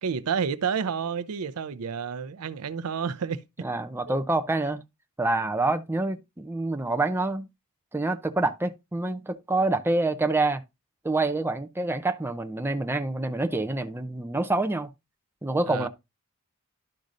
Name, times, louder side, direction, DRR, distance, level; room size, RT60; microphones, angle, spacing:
voice 1, 0.0-3.7 4.1-4.2 15.7-15.9, right 6 dB, 80° right, 0.5 m, -30 dB
voice 2, 3.6-4.8 5.2-7.5 7.9-10.6 11.0-14.9 15.4-15.9, right 2 dB, 10° right, 0.5 m, -27 dB
12.0 x 5.1 x 2.5 m
head